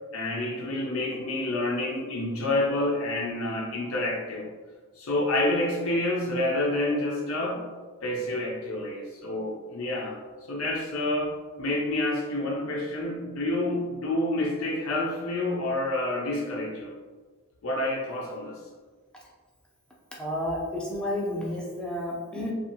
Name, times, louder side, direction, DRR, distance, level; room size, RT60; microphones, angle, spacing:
voice 1, 0.1-4.5 5.0-7.6 8.0-10.2 10.5-16.9 17.6-18.6, left 1 dB, 80° left, -2 dB, 0.5 m, -28 dB
voice 2, 20.2-22.5, left 1 dB, 5° left, -4 dB, 0.5 m, -31 dB
2.6 x 2.4 x 2.8 m, 1.4 s
head